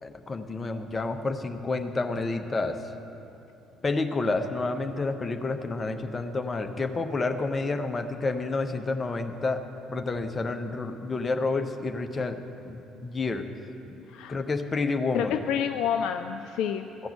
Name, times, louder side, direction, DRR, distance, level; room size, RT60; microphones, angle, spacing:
voice 1, 0.0-2.8 3.8-9.6 9.9-12.4 12.6-13.4 14.3-15.3 17.0-17.1, left 3 dB, 30° left, 6 dB, 0.8 m, -29 dB
voice 2, 15.1-16.9, left 8 dB, 60° left, 7 dB, 0.3 m, -28 dB
14.0 x 5.9 x 8.3 m, 3.0 s
figure-of-eight pair, 50°, 0 cm